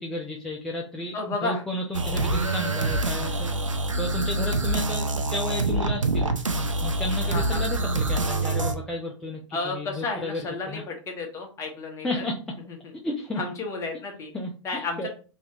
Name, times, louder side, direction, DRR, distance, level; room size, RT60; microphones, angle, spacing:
voice 1, 0.0-3.5 4.0-6.3 6.8-10.4 10.7-10.8 12.0-12.6 13.0-13.4 14.3-15.1, left 1 dB, 5° left, -2 dB, 0.3 m, -33 dB
voice 2, 1.1-1.6 7.2-7.7 9.5-12.2 13.4-14.3 14.6-15.1, left 3 dB, 20° left, 3 dB, 0.8 m, -32 dB
sound 1, 1.9-8.7, right 2 dB, 85° right, 0.5 m, -26 dB
3.0 x 2.4 x 2.8 m, 0.36 s
figure-of-eight pair, 110°, 16 cm